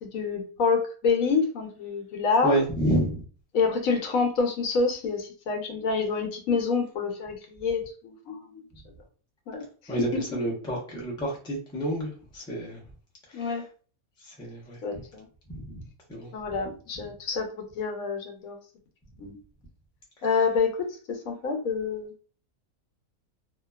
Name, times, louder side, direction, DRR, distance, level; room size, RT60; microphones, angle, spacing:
voice 1, 0.0-2.6 3.5-8.6 9.5-9.6 10.3-10.4 13.3-13.6 14.8-15.2 16.3-18.6 19.2-19.4 20.2-20.8 21.1-22.1, left 4 dB, 75° left, 1.0 m, -27 dB
voice 2, 2.4-3.2 9.9-12.8 13.3-13.6 14.2-15.0 15.5-15.8 16.1-16.3, right 1 dB, 5° left, 0.5 m, -29 dB
2.7 x 2.2 x 2.2 m
omnidirectional pair, 1.5 m